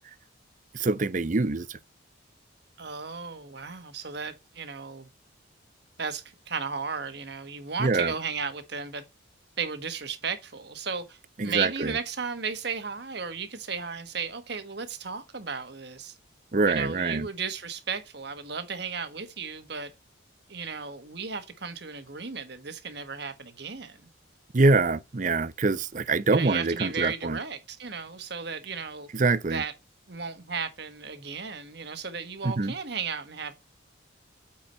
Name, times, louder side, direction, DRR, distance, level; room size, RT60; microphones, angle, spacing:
voice 1, 0.7-1.8 7.8-8.1 11.4-12.0 16.5-17.3 24.5-27.4 29.1-29.6 32.4-32.7, right 3 dB, 40° right, 0.6 m, -24 dB
voice 2, 2.8-5.1 6.0-9.1 9.6-16.1 16.7-19.9 20.5-24.0 26.3-29.1 29.5-29.7 30.1-33.5, right 5 dB, 55° right, 1.4 m, -35 dB
8.8 x 4.7 x 4.3 m
head